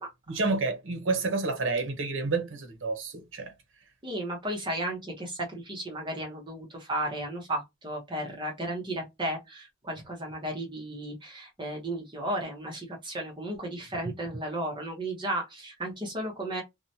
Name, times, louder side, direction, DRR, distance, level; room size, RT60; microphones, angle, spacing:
voice 1, 0.3-3.5, right 3 dB, 70° right, 0.8 m, -29 dB
voice 2, 4.0-16.6, right 1 dB, 25° right, 0.8 m, -34 dB
2.8 x 2.1 x 2.7 m
head